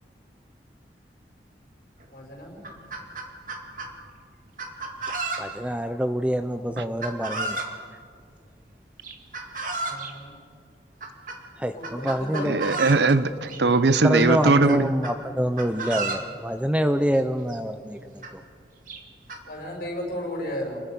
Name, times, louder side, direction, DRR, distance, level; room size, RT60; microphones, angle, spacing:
Chicken rooster, 2.0-2.1 2.5-3.9 4.6-5.7 7.0-7.7 9.0-10.1 11.0-11.4 11.8-13.1 13.5-13.6 14.0-15.2 15.6-16.3 17.2-17.3 17.5-17.6 18.2-18.3 18.9-19.4, right 3 dB, 50° right, 2.3 m, -32 dB
voice 1, 2.1-2.6 9.7-10.4 11.7-12.5 19.5-20.8, equal, 55° left, -1 dB, 6.5 m, -34 dB
voice 2, 5.4-7.6 11.6-12.5 14.0-18.2, equal, 5° right, 9 dB, 0.6 m, -26 dB
voice 3, 12.5-14.9, right 3 dB, 75° right, 14 dB, 0.8 m, -20 dB
29.5 x 21.0 x 5.4 m, 2.3 s
head